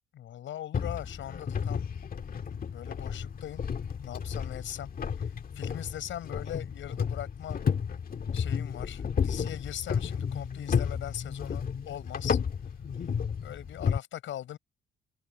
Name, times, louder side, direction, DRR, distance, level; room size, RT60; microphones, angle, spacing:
voice 1, 0.1-1.8 2.7-3.6 4.0-4.9 5.2-7.6 8.3-12.4 13.4-14.6, left 11 dB, 75° left, 7.5 m, -40 dB
sound 1, 0.7-14.0, left 6 dB, 45° left, 1.8 m, -32 dB
cardioid pair, 90°, 20 cm